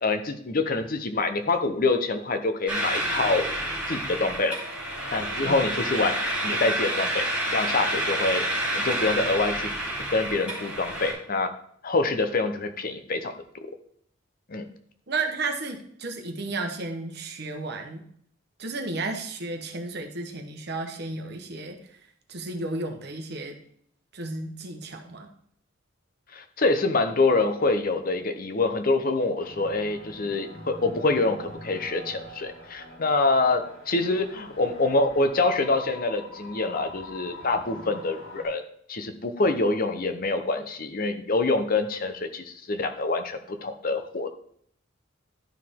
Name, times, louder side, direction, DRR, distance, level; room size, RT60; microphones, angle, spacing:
voice 1, 0.0-3.4 3.9-4.6 5.1-7.3 7.5-8.4 8.7-9.7 10.1-11.5 11.8-13.3 14.5-14.7 26.3-38.6 38.9-44.3, left 3 dB, 45° left, 8 dB, 0.7 m, -26 dB
sound 1, 2.7-11.1, right 1 dB, 5° right, 2.4 m, -29 dB
voice 2, 15.1-18.0 18.6-21.8 22.3-23.6 24.1-25.3, right 3 dB, 55° right, 4 dB, 1.1 m, -33 dB
sound 2, 29.4-38.4, left 1 dB, 85° left, 3.0 m, -44 dB
11.5 x 4.8 x 3.6 m, 0.66 s
head